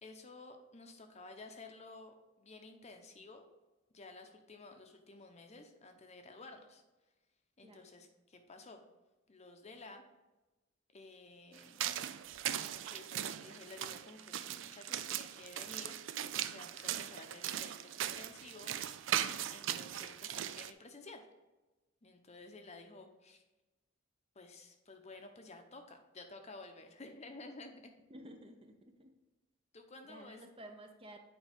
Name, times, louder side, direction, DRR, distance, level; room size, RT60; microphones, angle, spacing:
voice 1, 0.0-3.5 3.9-6.8 7.6-8.8 9.3-10.0 10.9-11.8 12.6-15.9 16.3-18.7 19.5-21.2 22.0-23.4 24.3-27.9 29.7-30.4, left 3 dB, 35° left, 5 dB, 0.8 m, -53 dB
sound 1, 11.6-20.7, right 11 dB, 65° right, 0.4 m, -39 dB
voice 2, 28.1-29.1 30.0-31.2, right 1 dB, 30° right, 4 dB, 0.7 m, -53 dB
8.9 x 4.9 x 3.5 m, 1.1 s
head